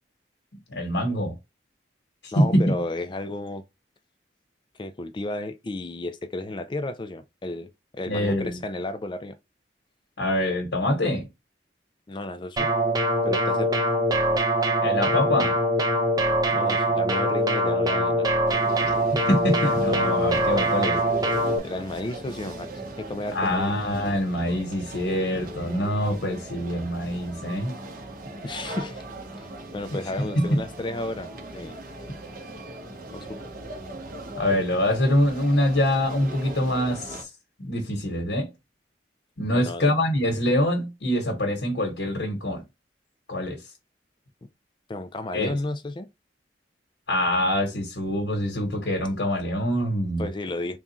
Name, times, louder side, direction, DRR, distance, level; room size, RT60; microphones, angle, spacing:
voice 1, 0.7-1.4 2.2-2.7 8.1-8.5 10.2-11.3 14.8-15.6 18.8-18.9 19.3-21.0 23.3-27.8 30.2-30.6 34.4-37.3 37.6-38.5 39.4-42.6 43.3-43.6 45.3-45.5 47.1-50.2, left 1 dB, 75° left, 1.2 m, -24 dB
voice 2, 2.3-3.6 4.8-9.4 12.1-12.7 13.2-13.7 16.5-18.3 21.6-22.7 23.0-23.7 28.4-29.0 29.4-31.8 33.1-33.4 39.5-39.9 44.9-46.1 50.2-50.8, left 2 dB, 25° left, 0.4 m, -33 dB
sound 1, 12.6-21.6, right 1 dB, 20° right, 0.6 m, -23 dB
sound 2, 18.5-37.2, right 1 dB, 50° right, 1.1 m, -39 dB
3.7 x 2.4 x 4.1 m
head